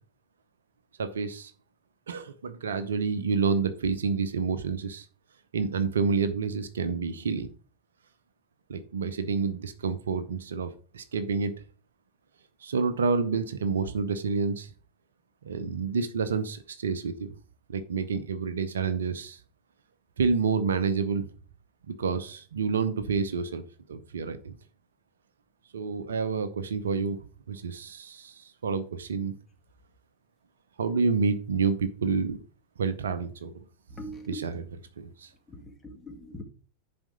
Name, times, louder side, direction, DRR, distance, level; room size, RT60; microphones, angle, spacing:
voice 1, 1.0-1.5 2.1-5.1 5.5-7.5 8.7-11.5 12.6-14.7 15.4-17.3 17.7-19.4 20.2-21.2 21.9-23.6 23.9-24.6 25.7-27.2 27.5-29.3 30.8-32.4 32.8-33.5 34.3-34.6 35.0-35.3, right 5 dB, 65° right, 11 dB, 0.8 m, -28 dB
voice 2, 33.9-34.5 35.5-36.4, equal, 10° left, 3 dB, 1.9 m, -41 dB
10.5 x 4.3 x 5.2 m, 0.39 s
figure-of-eight pair, 90°, 0 cm